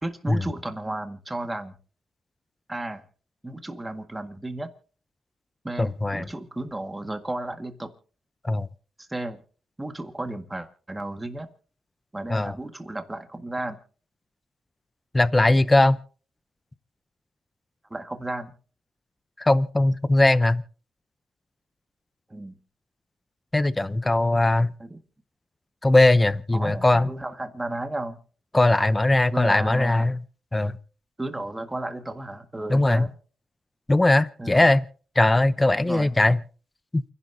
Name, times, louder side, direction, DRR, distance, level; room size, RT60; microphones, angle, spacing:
voice 1, 0.0-1.8 2.7-3.0 3.4-4.7 5.6-7.9 9.0-9.4 9.8-11.5 12.1-13.8 17.9-18.5 22.3-22.6 24.8-25.0 26.5-28.2 29.3-30.1 31.2-33.1 34.4-34.7 35.7-36.2, right 2 dB, 15° right, 1.8 m, -33 dB
voice 2, 5.8-6.3 8.4-8.7 12.3-12.5 15.1-16.0 19.4-20.6 23.5-24.7 25.8-27.1 28.5-30.2 30.5-30.8 32.7-33.1 33.9-34.8 35.2-36.4 36.9-37.0, left 2 dB, 15° left, 0.7 m, -20 dB
29.0 x 11.0 x 2.8 m
cardioid pair, 95°, 0 cm